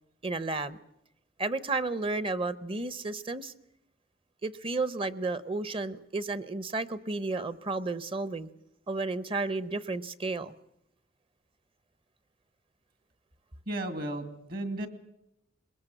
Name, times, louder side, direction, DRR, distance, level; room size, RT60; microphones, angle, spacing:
voice 1, 0.2-0.8 1.4-3.5 4.4-8.5 8.9-10.5, right 3 dB, 30° right, 16 dB, 0.8 m, -32 dB
voice 2, 13.7-14.9, right 1 dB, 50° right, 9 dB, 2.4 m, -34 dB
22.0 x 20.0 x 7.8 m, 0.80 s
head